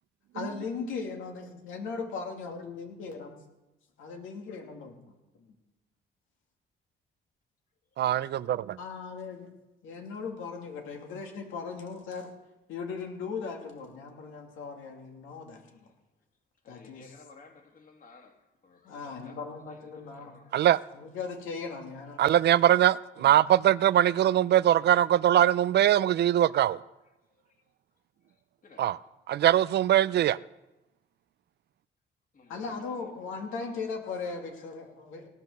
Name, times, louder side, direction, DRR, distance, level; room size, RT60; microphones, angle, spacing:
voice 1, 0.3-3.3 4.0-4.9 5.4-5.5 8.8-9.5 9.8-12.3 12.7-15.8 16.7-17.1 18.8-20.3 20.9-22.2 23.2-23.3 32.5-35.3, left 5 dB, 85° left, 2.4 m, -38 dB
voice 2, 8.0-8.8 20.5-20.8 22.2-26.8 28.8-29.0 29.3-30.4, right 11 dB, 60° right, 0.4 m, -22 dB
voice 3, 16.6-20.7 27.5-27.6 28.3-28.9 29.3-29.5 32.3-33.3 34.1-34.2, left 4 dB, 45° left, 2.3 m, -56 dB
17.5 x 7.3 x 6.6 m
cardioid pair, 90°, 20 cm